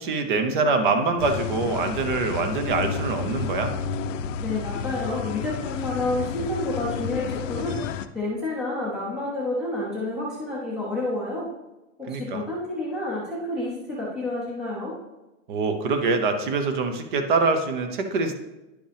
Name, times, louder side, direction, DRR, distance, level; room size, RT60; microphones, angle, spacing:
voice 1, 0.0-3.7 12.1-12.4 15.5-18.4, right 3 dB, 40° right, 7 dB, 0.8 m, -24 dB
sound 1, 1.2-8.1, left 6 dB, 85° left, 0.6 m, -31 dB
voice 2, 4.4-11.5 12.0-14.9, left 2 dB, ahead, -6 dB, 0.5 m, -29 dB
10.5 x 5.0 x 3.4 m, 1.0 s
supercardioid pair, 175°, 37 cm